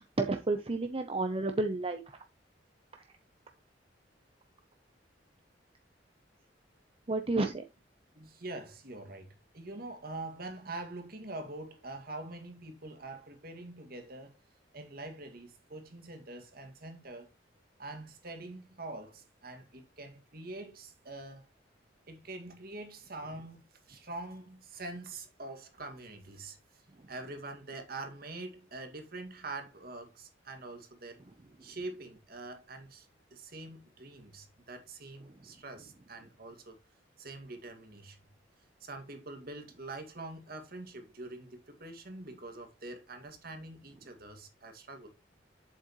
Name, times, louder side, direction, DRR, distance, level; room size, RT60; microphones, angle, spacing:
voice 1, 0.0-2.2 7.1-7.6, right 2 dB, 30° right, 0.7 m, -31 dB
voice 2, 8.1-14.4 14.7-17.3 17.8-21.5 22.1-26.8 27.1-31.2 31.6-36.8 37.2-38.2 38.8-45.1, right 2 dB, 55° right, 2.1 m, -45 dB
8.0 x 7.6 x 3.1 m
head